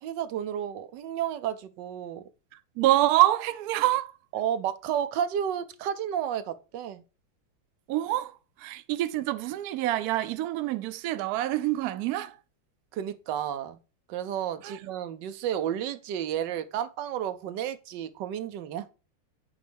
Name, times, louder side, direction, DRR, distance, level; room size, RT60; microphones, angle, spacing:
voice 1, 0.0-2.2 4.3-7.0 12.9-13.8 14.1-18.9, right 9 dB, 70° right, 1.2 m, -32 dB
voice 2, 2.8-4.1 7.9-8.3 8.6-12.3 14.6-14.8, right 15 dB, 85° right, 0.8 m, -26 dB
9.1 x 3.1 x 5.1 m
omnidirectional pair, 2.2 m